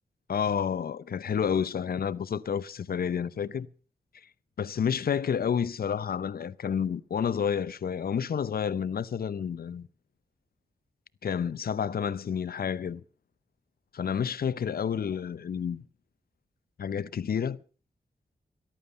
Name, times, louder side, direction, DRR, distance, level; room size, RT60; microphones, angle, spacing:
voice 1, 0.3-3.7 4.6-9.9 11.2-13.0 13.9-15.8 16.8-17.6, left 7 dB, 70° left, 0.7 m, -30 dB
14.0 x 11.5 x 6.7 m
cardioid pair, 65°, 16 cm